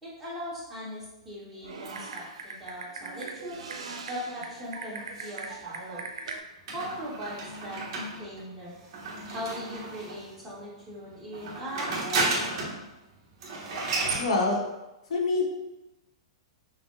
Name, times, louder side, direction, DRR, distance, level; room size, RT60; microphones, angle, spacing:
voice 1, 0.0-3.6 4.1-6.1 6.7-8.8 9.3-12.7, equal, 5° right, -9 dB, 1.3 m, -39 dB
Typing, 1.6-6.4, right 4 dB, 85° right, 0.6 m, -40 dB
sound 1, 6.7-10.3 11.3-12.8 13.1-13.2 13.4-14.3, right 3 dB, 40° right, 1.2 m, -32 dB
voice 2, 14.2-14.6 15.1-15.4, left 3 dB, 80° left, -1 dB, 1.2 m, -25 dB
5.9 x 2.2 x 3.8 m, 0.99 s
supercardioid pair, 165°, 3 cm